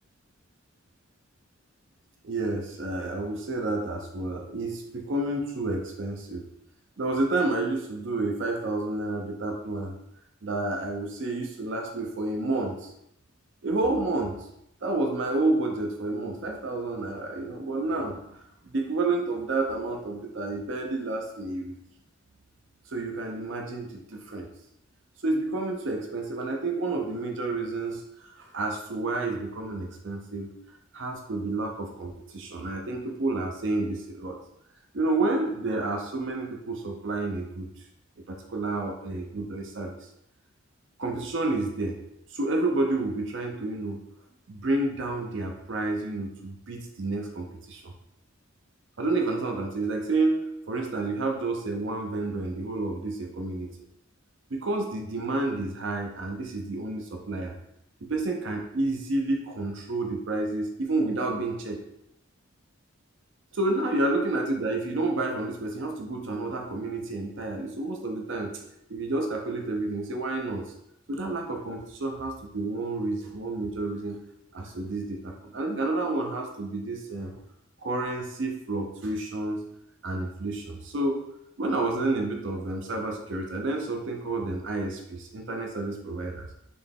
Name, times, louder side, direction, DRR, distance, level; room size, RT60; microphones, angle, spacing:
voice 1, 2.2-6.5 7.0-9.9 10.4-12.9 13.6-14.4 14.8-18.4 18.7-21.7 22.9-24.5 25.2-28.0 28.3-30.5 30.9-34.4 34.9-37.7 38.3-40.0 41.0-42.0 42.3-44.0 44.5-47.9 49.0-53.7 54.5-57.5 58.0-61.8 63.5-68.6 68.9-70.7 71.1-74.2 74.5-77.4 77.8-79.6 80.0-81.2 81.6-86.5, right 2 dB, 60° right, 2 dB, 0.5 m, -30 dB
4.2 x 3.2 x 3.4 m, 0.77 s
head